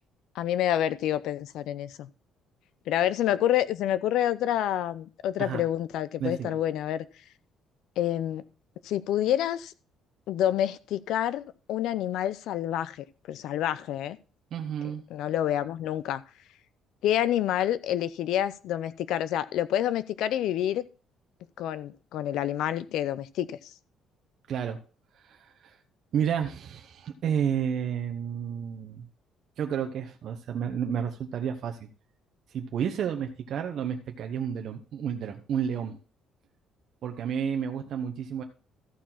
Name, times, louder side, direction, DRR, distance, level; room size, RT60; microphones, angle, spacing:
voice 1, 0.4-2.1 2.9-7.0 8.0-8.4 8.8-9.7 10.3-14.2 15.1-16.2 17.0-20.8 21.6-23.6, left 11 dB, 70° left, 0.6 m, -28 dB
voice 2, 6.2-6.5 14.5-15.0 24.5-24.8 25.2-25.8 26.1-29.1 29.6-31.9 32.5-36.0 37.0-38.4, right 8 dB, 45° right, 1.0 m, -31 dB
14.0 x 4.7 x 5.8 m
cardioid pair, 180°, 0 cm